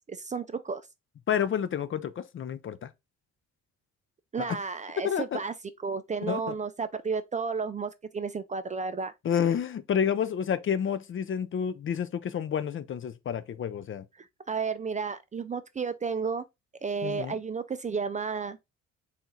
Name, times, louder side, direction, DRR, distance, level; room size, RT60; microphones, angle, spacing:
voice 1, 0.1-0.8 4.3-5.5 5.8-9.1 14.2-16.4 16.8-18.6, right 5 dB, 25° right, 0.4 m, -32 dB
voice 2, 1.3-2.9 4.4-4.6 5.0-5.4 6.2-6.5 9.2-14.0 17.0-17.4, left 8 dB, 45° left, 0.5 m, -29 dB
4.1 x 2.5 x 3.8 m
cardioid pair, 90°, 30 cm